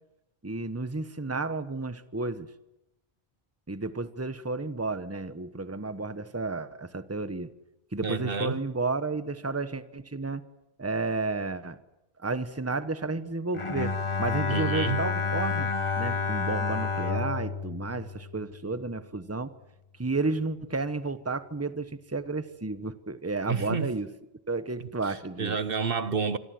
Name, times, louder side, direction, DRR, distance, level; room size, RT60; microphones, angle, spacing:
voice 1, 0.4-2.5 3.7-7.5 7.9-10.4 10.8-11.8 12.2-15.7 16.0-19.5 20.0-24.1 24.5-25.6, right 3 dB, 15° right, 1.2 m, -32 dB
voice 2, 8.0-8.6 14.5-15.0 23.5-23.9 25.4-26.4, right 5 dB, 60° right, 1.3 m, -29 dB
Bowed string instrument, 13.5-18.9, left 4 dB, 30° left, 1.2 m, -30 dB
27.0 x 22.0 x 7.8 m
omnidirectional pair, 1.1 m